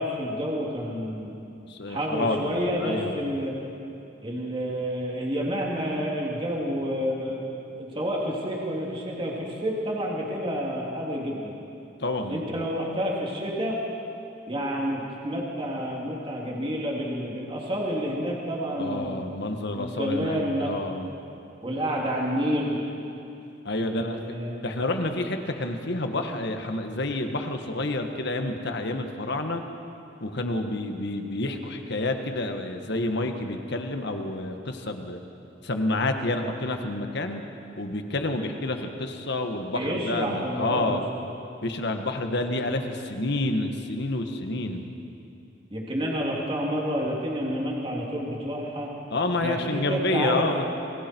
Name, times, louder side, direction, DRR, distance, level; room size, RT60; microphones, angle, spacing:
voice 1, 0.0-1.4 1.9-3.6 4.2-7.4 7.8-11.5 12.3-13.8 14.5-19.2 19.8-20.7 21.6-22.8 23.8-24.6 39.7-41.0 45.7-48.9 49.4-50.6, equal, 30° right, -3 dB, 3.2 m, -29 dB
voice 2, 1.7-3.2 12.0-12.4 18.8-21.1 23.6-24.2 24.6-29.6 30.2-35.2 35.6-37.4 37.8-41.0 41.6-44.8 49.1-50.6, left 2 dB, 60° left, 5 dB, 1.6 m, -29 dB
29.0 x 22.5 x 4.6 m, 2.8 s
head